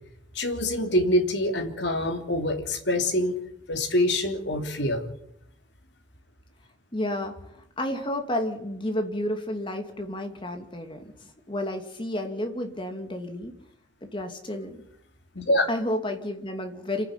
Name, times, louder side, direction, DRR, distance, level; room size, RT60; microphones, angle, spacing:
voice 1, 0.3-3.4 3.7-5.0 15.3-15.7, left 1 dB, 65° left, 5 dB, 3.0 m, -25 dB
voice 2, 6.9-7.3 7.8-13.5 14.0-14.8 15.7-17.1, left 1 dB, 25° left, 5 dB, 2.6 m, -31 dB
27.5 x 10.0 x 9.7 m, 0.79 s
head